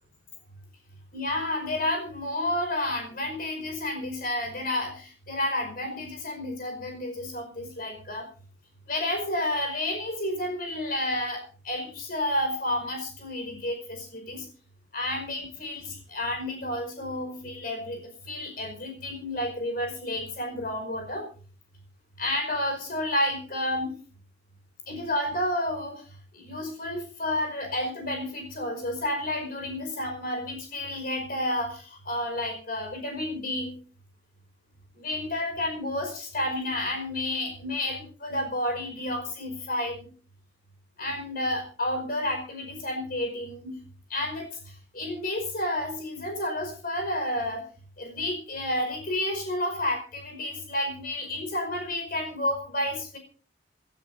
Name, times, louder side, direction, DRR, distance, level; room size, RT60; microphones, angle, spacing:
voice 1, 1.1-8.3 8.9-14.5 14.9-21.2 22.2-24.0 24.9-33.7 34.9-40.1 41.0-43.8 44.1-47.7 48.0-53.2, left 1 dB, 50° left, 3 dB, 5.1 m, -31 dB
28.0 x 12.5 x 2.7 m, 0.39 s
head